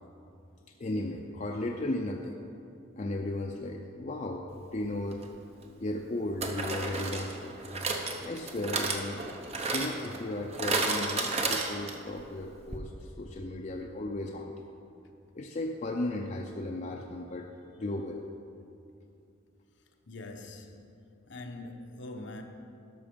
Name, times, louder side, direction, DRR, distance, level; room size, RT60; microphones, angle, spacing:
voice 1, 0.8-2.4 3.0-5.3 5.8-7.6 8.2-9.2 9.7-14.6 15.3-17.5 17.7-18.2, left 1 dB, 35° left, 0.5 m, -35 dB
sound 1, 5.1-5.2 6.4-12.2 12.4-12.5 12.7-12.8, right 3 dB, 30° right, 0.8 m, -32 dB
voice 2, 20.1-20.9 21.3-22.4, left 2 dB, 60° left, 0.8 m, -43 dB
12.5 x 5.9 x 5.1 m
head